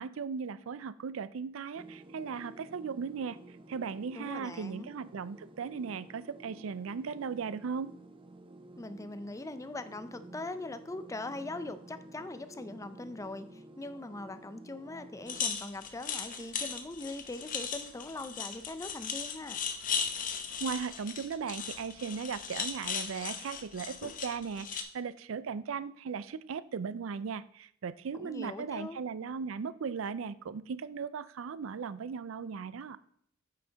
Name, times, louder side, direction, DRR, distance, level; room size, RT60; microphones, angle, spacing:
voice 1, 0.0-3.4 3.7-7.9 20.6-33.0, right 6 dB, 75° right, 16 dB, 0.4 m, -37 dB
sound 1, 1.7-15.4, right 2 dB, 25° right, 0.6 m, -52 dB
voice 2, 4.1-4.9 8.8-19.6 28.1-29.0, left 2 dB, 15° left, 11 dB, 0.5 m, -41 dB
sound 2, 15.3-24.8, left 6 dB, 45° left, 0.8 m, -37 dB
8.5 x 5.8 x 4.0 m, 0.64 s
head